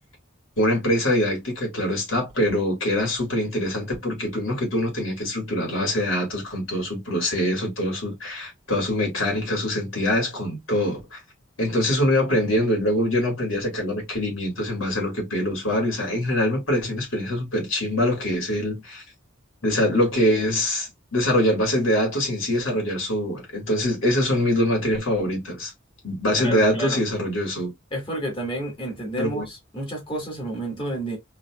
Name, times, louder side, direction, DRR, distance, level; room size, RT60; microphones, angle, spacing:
voice 1, 0.6-11.2 11.6-19.0 19.6-25.7 26.0-27.7 29.2-29.5, left 1 dB, 75° left, 2.3 m, -24 dB
voice 2, 26.3-27.0 27.9-31.2, right 1 dB, 25° left, 1.7 m, -30 dB
3.9 x 2.9 x 2.4 m
head